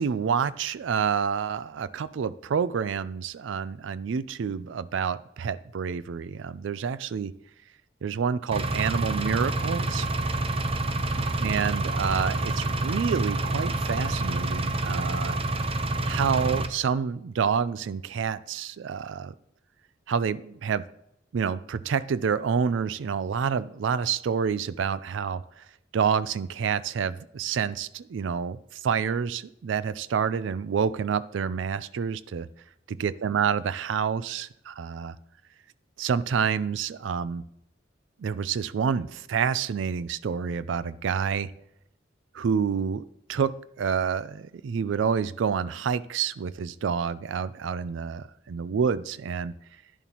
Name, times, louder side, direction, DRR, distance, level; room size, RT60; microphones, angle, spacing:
voice 1, 0.0-7.3 8.0-10.1 11.4-15.4 16.1-19.3 20.1-20.8 21.3-25.4 25.9-28.6 28.8-32.5 32.9-35.1 36.0-37.4 38.2-41.5 42.3-43.0 43.3-49.5, right 6 dB, 75° right, 15 dB, 0.4 m, -28 dB
Engine, 8.5-16.7, right 2 dB, 30° right, 0.7 m, -28 dB
11.0 x 11.0 x 2.9 m, 0.76 s
head